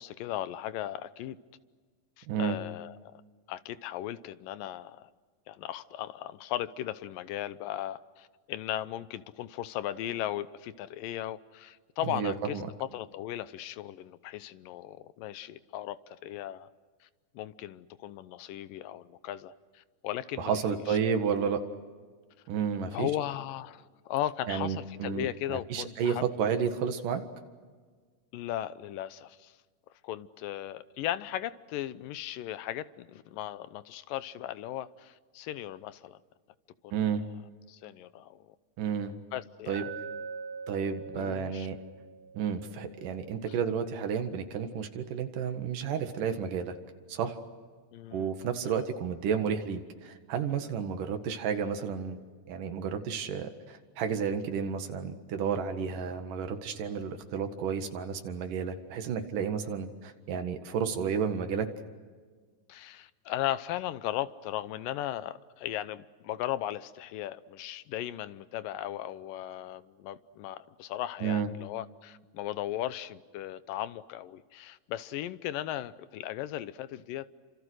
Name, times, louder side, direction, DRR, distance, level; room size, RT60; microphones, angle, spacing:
voice 1, 0.0-1.4 2.2-3.2 3.5-5.1 5.5-16.7 17.0-17.1 17.3-21.0 22.9-26.3 28.3-29.6 30.0-36.2 36.8-37.0 37.7-38.6 39.3-39.9 41.1-41.7 42.7-43.0 47.9-48.3 48.6-48.8 51.0-51.1 61.0-61.1 62.7-77.3, left 13 dB, 80° left, 2.5 m, -37 dB
voice 2, 2.3-2.6 12.0-12.7 20.4-21.6 22.5-23.1 24.5-27.2 36.9-37.2 38.8-39.1 39.7-39.8 40.7-41.8 42.3-46.8 47.1-47.4 48.1-52.2 52.5-61.7 71.2-71.5, right 7 dB, 75° right, 3.3 m, -31 dB
Glass, 39.7-43.9, right 5 dB, 55° right, 3.2 m, -44 dB
29.5 x 26.5 x 6.4 m
omnidirectional pair, 3.9 m